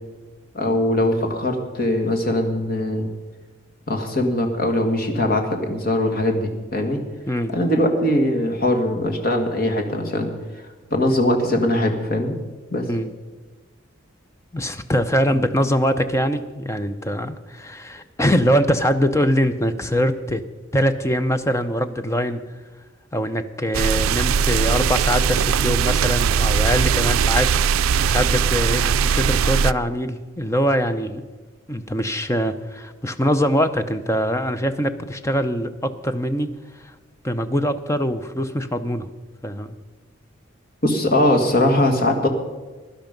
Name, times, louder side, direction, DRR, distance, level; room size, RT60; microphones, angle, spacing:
voice 1, 0.5-3.1 3.9-7.0 7.5-10.3 10.9-12.4 12.7-12.9 40.8-42.3, left 1 dB, 45° left, 3 dB, 1.9 m, -21 dB
voice 2, 14.5-20.4 20.7-22.4 23.1-31.2 31.7-36.5 36.8-36.9 37.2-39.1 39.4-39.7, equal, 15° left, 10 dB, 0.6 m, -23 dB
sound 1, 23.7-29.7, right 6 dB, 90° right, 0.4 m, -20 dB
16.5 x 11.5 x 5.3 m, 1.3 s
head